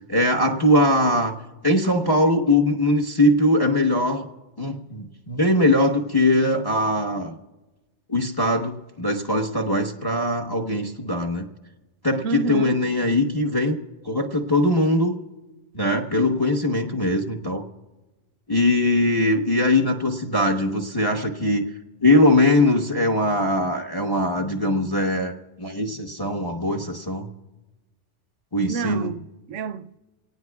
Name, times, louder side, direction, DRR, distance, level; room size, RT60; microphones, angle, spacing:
voice 1, 0.1-1.3 1.6-4.3 4.6-7.4 8.1-11.5 12.0-13.8 14.0-15.1 15.7-17.6 18.5-21.6 22.0-25.3 25.6-27.3 28.5-29.1, left 1 dB, 20° left, 1.0 m, -21 dB
voice 2, 12.2-12.8 28.7-30.0, right 5 dB, 90° right, 1.0 m, -29 dB
27.0 x 18.5 x 2.3 m
omnidirectional pair, 1.2 m